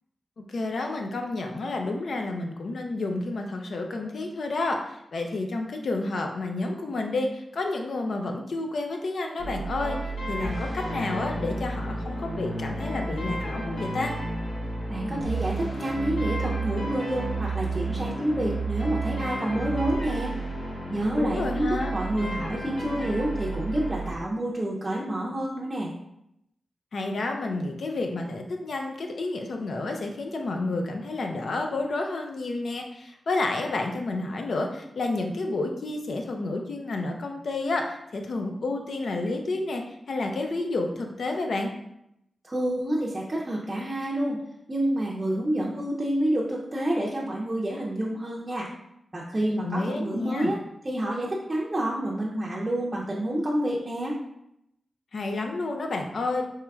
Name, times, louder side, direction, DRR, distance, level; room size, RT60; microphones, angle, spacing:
voice 1, 0.4-10.0 10.3-14.1 21.2-21.9 26.9-41.7 49.6-50.5 55.1-56.4, left 2 dB, 70° left, 3 dB, 0.5 m, -30 dB
sound 1, 9.4-24.1, right 2 dB, 90° left, 0.9 m, -31 dB
voice 2, 14.9-20.3 20.9-25.9 42.4-44.4 44.7-48.7 49.1-50.6 50.8-54.2, right 1 dB, 25° right, -4 dB, 0.5 m, -28 dB
4.6 x 3.0 x 2.3 m, 0.80 s
wide cardioid pair, 105°, 0 cm